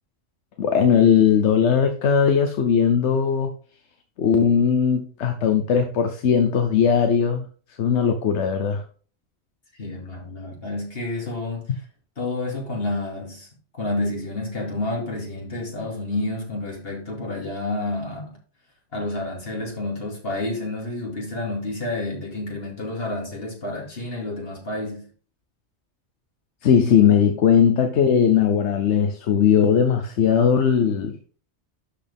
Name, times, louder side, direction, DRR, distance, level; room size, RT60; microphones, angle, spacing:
voice 1, 0.6-3.5 4.2-7.4 7.8-8.8 26.6-31.3, left 7 dB, 80° left, 1.1 m, -19 dB
voice 2, 9.7-11.8 12.2-13.5 13.7-18.4 18.9-25.1, left 2 dB, 60° left, 2.7 m, -29 dB
11.5 x 4.3 x 3.5 m
omnidirectional pair, 1.2 m